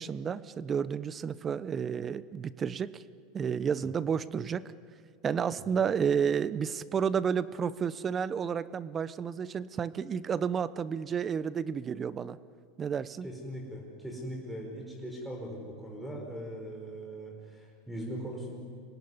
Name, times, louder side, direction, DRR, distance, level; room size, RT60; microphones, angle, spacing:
voice 1, 0.0-3.0 3.3-4.7 5.2-12.4 12.8-13.3, right 7 dB, 30° right, 17 dB, 0.8 m, -31 dB
voice 2, 13.2-18.6, right 1 dB, ahead, 0 dB, 4.9 m, -40 dB
25.0 x 19.0 x 9.8 m, 2.4 s
hypercardioid pair, 105°, 0 cm